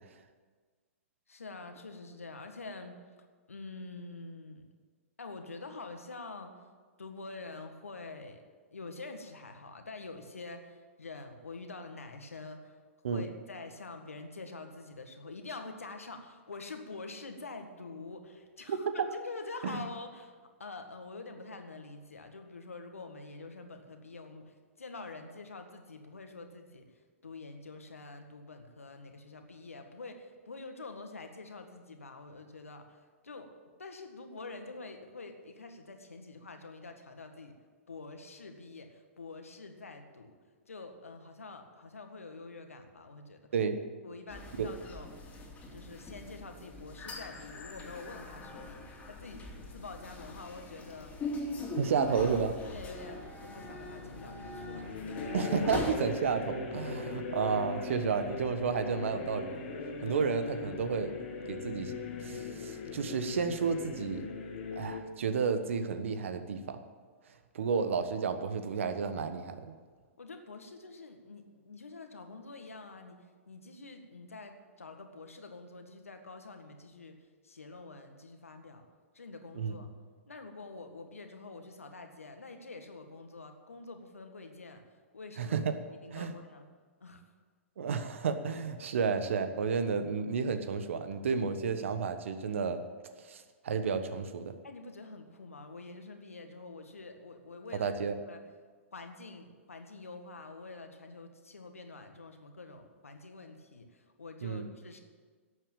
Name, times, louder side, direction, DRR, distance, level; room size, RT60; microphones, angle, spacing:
voice 1, 1.3-3.0 3.5-4.7 5.2-6.6 7.0-8.4 8.7-12.8 13.1-26.9 27.2-33.5 33.8-37.6 37.9-40.3 40.7-43.4 44.0-45.1 45.7-49.4 49.7-51.1 51.9-52.1 52.6-55.4 70.2-77.2 77.4-78.8 79.1-79.9 80.3-84.8 85.1-85.6 85.9-86.7 87.0-87.2 94.6-97.9 98.3-98.4 98.9-105.0, left 3 dB, 85° left, 5 dB, 1.7 m, -46 dB
voice 2, 18.7-19.1 19.6-19.8 43.5-43.8 44.6-44.7 51.7-52.5 55.3-59.5 60.0-61.1 61.5-64.3 64.7-66.8 67.5-69.7 79.5-79.8 85.4-85.8 86.1-86.3 87.8-92.8 93.2-94.5 97.7-98.1 104.4-104.7, right 5 dB, 65° right, 9 dB, 1.3 m, -32 dB
sound 1, 44.3-55.9, left 2 dB, 20° left, 2.8 m, -42 dB
sound 2, 53.6-65.0, left 4 dB, 55° left, 2.2 m, -40 dB
11.5 x 8.3 x 9.0 m, 1.5 s
figure-of-eight pair, 110°, 7 cm